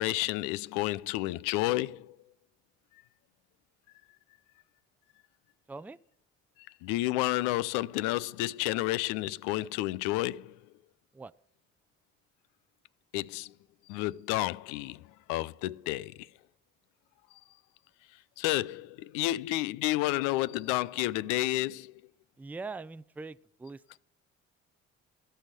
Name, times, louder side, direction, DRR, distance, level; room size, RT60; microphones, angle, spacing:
voice 1, 0.0-2.2 6.8-10.6 13.1-13.5 13.9-16.3 18.4-21.9, left 17 dB, 80° left, 0.5 m, -30 dB
voice 2, 5.7-6.0 11.1-11.3 22.4-24.0, right 3 dB, 5° right, 0.4 m, -42 dB
14.5 x 5.6 x 9.7 m
hypercardioid pair, 55°, 32 cm